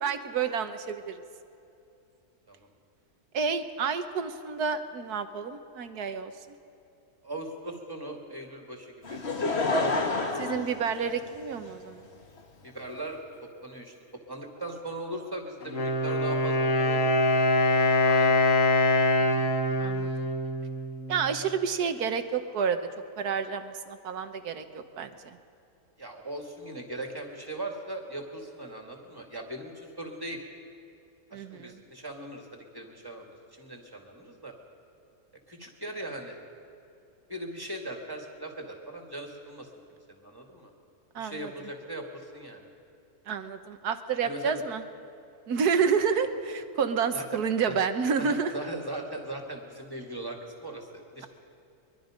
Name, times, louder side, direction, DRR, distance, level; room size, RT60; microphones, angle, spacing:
voice 1, 0.0-1.2 3.3-6.3 10.4-12.1 19.8-20.1 21.1-22.8 23.2-25.4 31.3-31.8 41.2-41.5 43.3-44.8 45.5-48.5, right 6 dB, 80° right, 9 dB, 1.6 m, -29 dB
voice 2, 7.2-9.2 12.6-17.1 18.0-18.5 26.0-30.4 31.3-34.5 35.5-36.4 37.3-39.7 40.1-40.7 41.2-42.7 44.2-44.6 47.1-47.4 47.7-47.8 48.2-51.3, right 1 dB, 15° right, 1 dB, 2.4 m, -39 dB
Laughter / Crowd, 9.0-11.7 12.4-12.5, left 2 dB, 45° left, 1.8 m, -28 dB
Wind instrument woodwind instrument, 15.6-21.4, left 2 dB, 60° left, 1.9 m, -24 dB
23.0 x 22.5 x 5.2 m, 2.8 s
omnidirectional pair, 1.6 m